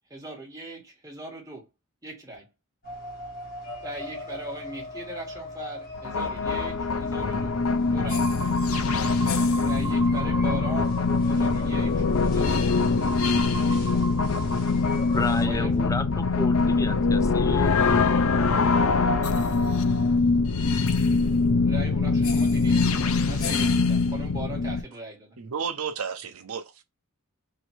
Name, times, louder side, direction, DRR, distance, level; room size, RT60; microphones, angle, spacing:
voice 1, 0.1-1.7 2.0-2.5 3.8-7.6 7.9-8.3 9.7-11.0 11.3-12.8 13.7-14.1 15.4-15.9 21.6-22.9 23.3-25.4, right 1 dB, 15° right, 1.5 m, -39 dB
sound 1, 2.8-15.5, equal, 45° left, 1.3 m, -38 dB
sound 2, 5.9-24.8, left 4 dB, 75° left, 0.6 m, -23 dB
voice 2, 15.1-17.8, left 3 dB, 15° left, 0.3 m, -32 dB
voice 3, 25.4-26.8, right 6 dB, 80° right, 0.7 m, -32 dB
3.0 x 2.6 x 4.4 m
head